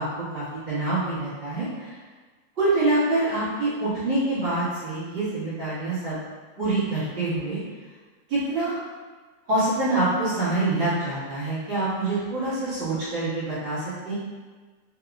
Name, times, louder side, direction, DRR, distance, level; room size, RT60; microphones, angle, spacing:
voice 1, 0.0-2.0 2.5-6.2 6.6-7.6 8.3-8.7 9.5-14.1, right 2 dB, 50° right, -13 dB, 1.7 m, -26 dB
5.0 x 2.9 x 2.3 m, 1.4 s
omnidirectional pair, 3.4 m